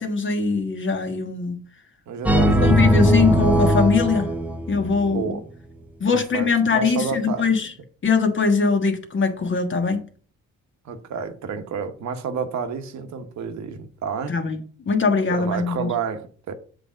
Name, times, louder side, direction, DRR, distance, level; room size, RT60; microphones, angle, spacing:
voice 1, 0.0-1.6 2.6-4.3 4.7-5.3 6.0-7.7 8.0-10.0 14.3-14.6 14.9-15.9, left 4 dB, 40° left, 1.4 m, -21 dB
voice 2, 2.1-2.8 5.1-5.4 6.1-7.5 10.8-14.3 15.3-16.5, right 6 dB, 65° right, 1.1 m, -30 dB
sound 1, 2.3-5.2, equal, 5° right, 0.7 m, -19 dB
7.7 x 3.3 x 5.6 m
cardioid pair, 90°, 30 cm